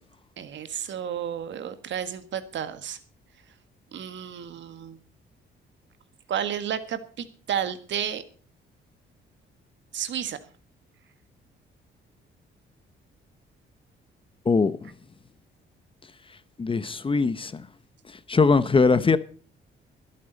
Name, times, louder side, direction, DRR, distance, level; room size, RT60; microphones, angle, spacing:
voice 1, 0.4-3.0 3.9-5.0 6.3-8.2 9.9-10.4, right 9 dB, 65° right, 1.7 m, -32 dB
voice 2, 14.5-14.9 16.6-17.6 18.3-19.2, left 4 dB, 25° left, 0.9 m, -21 dB
23.0 x 8.6 x 4.0 m
cardioid pair, 90°, 20 cm